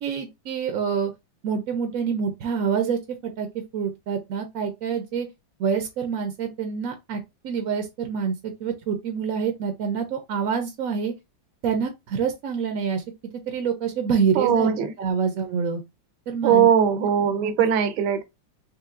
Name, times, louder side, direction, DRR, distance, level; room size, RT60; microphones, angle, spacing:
voice 1, 0.0-1.1 1.4-3.5 3.7-5.3 5.6-11.1 11.6-13.0 13.3-14.7 15.0-15.8 16.3-16.7, right 6 dB, 65° right, 0.8 m, -26 dB
voice 2, 14.4-14.9 16.4-18.2, right 8 dB, 85° right, 1.4 m, -20 dB
4.6 x 3.1 x 2.4 m
omnidirectional pair, 2.1 m